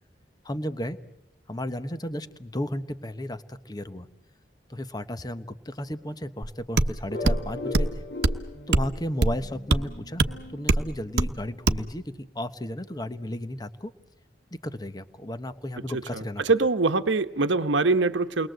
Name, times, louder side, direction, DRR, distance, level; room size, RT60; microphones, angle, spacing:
voice 1, 0.4-1.0 1.5-4.1 4.7-8.0 8.7-10.2 10.5-13.9 14.5-16.4, left 1 dB, 20° left, 1.1 m, -34 dB
sound 1, 6.4-6.5 6.8-6.9 7.3-7.4 7.7-7.9 8.2-8.4 8.7-8.9 9.2-9.4 9.7-9.8 10.2-10.3 10.7-10.9 11.2-11.3 11.7-11.8, right 2 dB, 60° right, 1.0 m, -22 dB
sound 2, 7.1-11.7, left 2 dB, 70° left, 2.5 m, -39 dB
voice 2, 16.1-18.5, right 3 dB, 85° right, 1.0 m, -23 dB
29.5 x 21.5 x 7.9 m
head